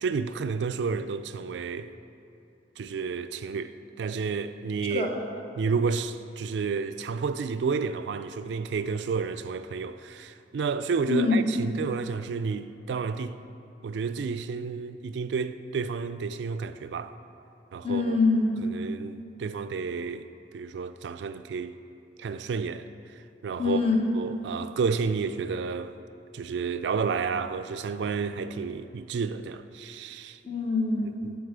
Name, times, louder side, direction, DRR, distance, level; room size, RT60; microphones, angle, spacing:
voice 1, 0.0-1.9 2.8-5.1 5.6-13.4 13.8-17.2 17.7-18.2 18.6-20.2 20.5-21.8 22.2-23.1 23.4-23.8 24.1-25.9 26.3-30.4 31.2-31.3, right 5 dB, 70° right, 0.3 m, -31 dB
voice 2, 11.1-11.6 17.8-18.7 23.6-24.0 30.4-31.1, left 3 dB, 35° left, 1.1 m, -24 dB
11.5 x 3.9 x 6.7 m
head